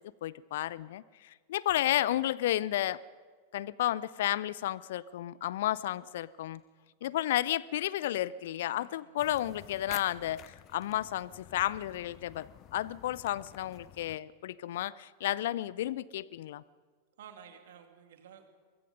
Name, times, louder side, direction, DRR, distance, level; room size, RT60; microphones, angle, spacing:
voice 1, 0.2-3.0 3.5-6.6 7.0-10.4 10.7-16.6, left 13 dB, 55° left, 21 dB, 0.5 m, -32 dB
voice 2, 8.7-9.2 17.2-18.5, right 8 dB, 60° right, 6 dB, 2.6 m, -53 dB
sound 1, 9.2-14.2, left 14 dB, 35° left, 0.9 m, -50 dB
23.5 x 23.0 x 5.3 m, 1.5 s
figure-of-eight pair, 90°, 0 cm